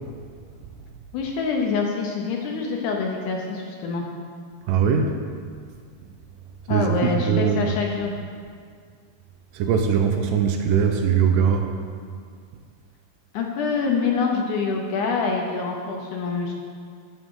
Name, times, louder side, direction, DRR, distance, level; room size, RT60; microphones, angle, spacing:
voice 1, 1.1-4.1 6.7-8.1 13.3-16.5, left 5 dB, 75° left, 1 dB, 2.0 m, -25 dB
voice 2, 4.7-5.2 6.7-7.7 9.5-11.7, right 7 dB, 80° right, 5 dB, 2.1 m, -21 dB
13.0 x 6.3 x 3.7 m, 2.1 s
omnidirectional pair, 4.0 m